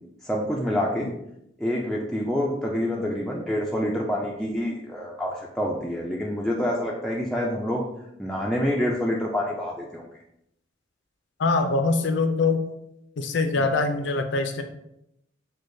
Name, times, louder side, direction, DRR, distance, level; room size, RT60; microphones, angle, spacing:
voice 1, 0.2-1.1 1.6-7.8 8.2-10.0, equal, ahead, -3 dB, 0.3 m, -27 dB
voice 2, 11.4-12.7 13.2-14.6, left 3 dB, 65° left, 6 dB, 0.5 m, -23 dB
6.3 x 2.2 x 2.6 m, 0.80 s
head